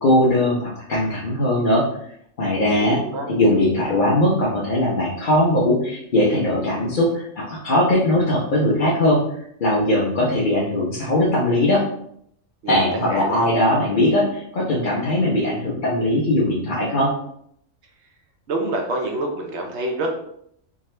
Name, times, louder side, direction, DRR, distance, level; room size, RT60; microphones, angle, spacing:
voice 1, 0.0-1.8 2.4-3.0 3.3-9.2 9.6-11.8 12.7-17.1, left 1 dB, 45° left, -6 dB, 0.8 m, -20 dB
voice 2, 2.7-3.4 12.6-13.4 18.5-20.1, right 2 dB, 60° right, 2 dB, 1.0 m, -27 dB
3.6 x 2.8 x 3.2 m, 0.70 s
omnidirectional pair, 1.4 m